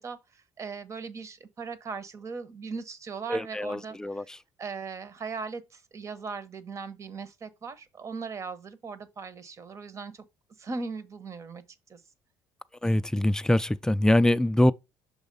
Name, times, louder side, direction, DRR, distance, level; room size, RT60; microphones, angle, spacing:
voice 1, 0.0-4.3 4.6-10.3 10.6-11.6 11.9-12.0, right 4 dB, 40° right, 1.0 m, -39 dB
voice 2, 3.3-4.2 12.8-14.7, left 1 dB, 10° left, 0.4 m, -23 dB
6.4 x 3.0 x 5.3 m
supercardioid pair, 85°, 8 cm